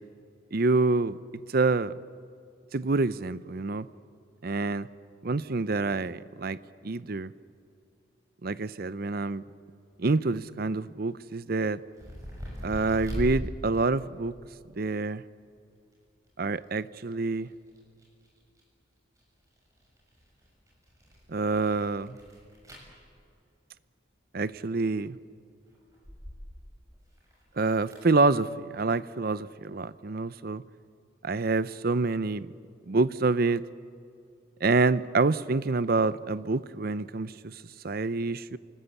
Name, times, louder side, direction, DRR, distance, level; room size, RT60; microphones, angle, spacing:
voice 1, 0.5-1.2 1.5-1.9 2.7-3.9 4.4-4.9 5.2-6.6 6.8-7.3 8.4-9.4 10.0-11.8 12.6-14.3 14.8-15.2 16.4-17.5 21.3-22.2 24.3-25.2 27.6-30.6 31.2-32.5 32.9-33.6 34.6-37.5 37.8-38.6, right 3 dB, 50° right, 16 dB, 0.6 m, -27 dB
sound 1, 9.9-10.0 10.2-10.6 11.5-13.3 13.7-14.4 15.9-16.0 16.2-16.7 17.0-18.6 19.2-23.2 24.5-25.0 25.7-26.7 26.9-28.0, equal, 15° right, 7.1 m, -41 dB
28.5 x 19.5 x 8.2 m, 2.4 s
head